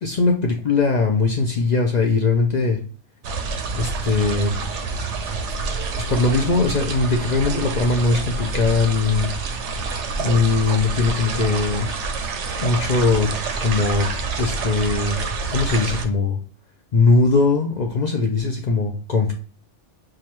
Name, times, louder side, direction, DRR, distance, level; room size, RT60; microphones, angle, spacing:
voice 1, 0.0-2.8 3.8-4.5 6.1-9.3 10.2-11.9 12.6-13.3 13.6-14.1 14.4-15.2 15.5-16.4 16.9-19.3, left 3 dB, 65° left, 2 dB, 0.4 m, -20 dB
sound 1, 3.2-16.0, right 4 dB, 75° right, 0.9 m, -27 dB
4.8 x 2.3 x 2.9 m, 0.40 s
omnidirectional pair, 1.3 m